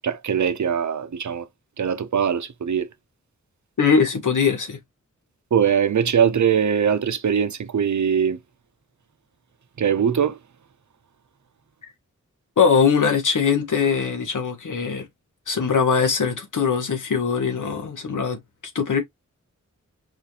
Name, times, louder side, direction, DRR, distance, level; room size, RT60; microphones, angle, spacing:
voice 1, 0.0-1.5 1.8-2.9 5.5-8.4 9.8-10.4, right 7 dB, 70° right, 0.7 m, -21 dB
voice 2, 3.8-4.8 12.6-15.1 15.5-18.4 18.7-19.0, left 6 dB, 80° left, 1.2 m, -21 dB
4.2 x 2.5 x 2.8 m
cardioid pair, 50°, 30 cm